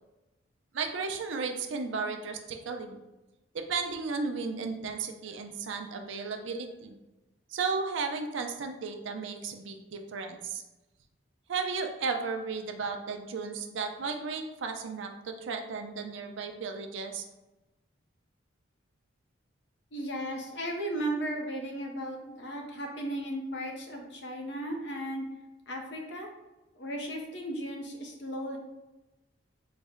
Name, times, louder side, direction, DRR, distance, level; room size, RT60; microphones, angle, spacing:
voice 1, 0.7-3.0 3.5-7.0 7.5-10.6 11.5-17.2, right 4 dB, 70° right, 5 dB, 0.4 m, -34 dB
voice 2, 19.9-25.2 25.7-26.3 26.7-28.6, right 1 dB, 60° left, 1 dB, 0.7 m, -35 dB
4.0 x 2.1 x 3.6 m, 1.0 s
head